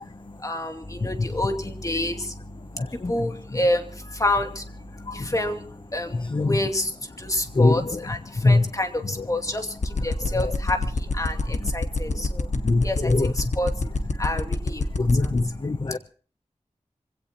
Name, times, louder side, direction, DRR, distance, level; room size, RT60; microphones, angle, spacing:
voice 1, 0.4-2.2 3.1-3.9 4.2-4.6 5.3-5.6 5.9-6.1 6.5-6.9 7.2-8.2 8.4-9.7 10.0-10.8 11.2-11.3 11.7-12.3 12.8-13.7 14.2-14.8, left 1 dB, 30° left, 2.6 m, -27 dB
sound 1, 9.8-15.4, left 4 dB, 80° left, 1.7 m, -24 dB
voice 2, 12.6-13.3 15.0-16.0, left 3 dB, 45° left, 0.7 m, -21 dB
26.0 x 17.0 x 2.9 m
wide cardioid pair, 80°, 12 cm